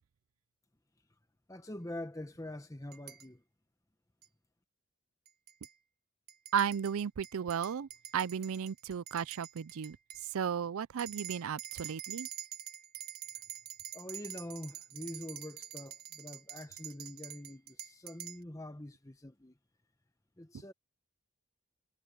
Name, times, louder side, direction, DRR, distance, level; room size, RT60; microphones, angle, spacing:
voice 1, 1.5-3.4 13.9-19.5 20.4-20.7, left 1 dB, 15° left, 1.0 m, -45 dB
sound 1, 2.9-3.3 4.2-4.3 5.3-5.7 6.3-10.3 11.0-18.4, right 11 dB, 45° right, 1.6 m, -46 dB
voice 2, 6.5-10.0 10.3-12.3, right 7 dB, 85° right, 0.4 m, -34 dB
head